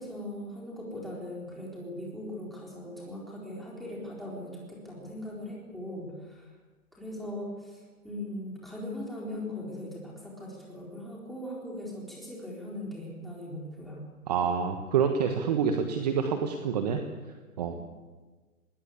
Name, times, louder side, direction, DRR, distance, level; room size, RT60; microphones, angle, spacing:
voice 1, 0.0-6.5 6.9-14.0, left 1 dB, ahead, -4 dB, 4.0 m, -39 dB
voice 2, 14.3-17.0 17.6-17.7, right 7 dB, 25° right, 6 dB, 1.3 m, -27 dB
20.5 x 20.0 x 8.5 m, 1.3 s
hypercardioid pair, 165°, 45 cm